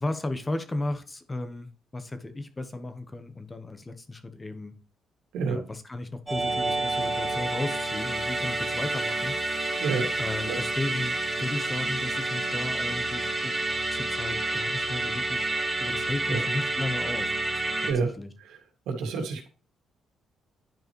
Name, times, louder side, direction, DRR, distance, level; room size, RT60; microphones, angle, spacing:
voice 1, 0.0-4.7 5.5-9.4 10.2-13.6 13.9-15.5 15.8-17.3 18.2-18.3, left 2 dB, 20° left, 1.1 m, -34 dB
Musical instrument, 6.3-17.9, right 2 dB, 15° right, 2.4 m, -29 dB
voice 2, 18.9-19.5, right 4 dB, 90° right, 2.1 m, -28 dB
10.5 x 4.7 x 3.1 m
cardioid pair, 90°, 0 cm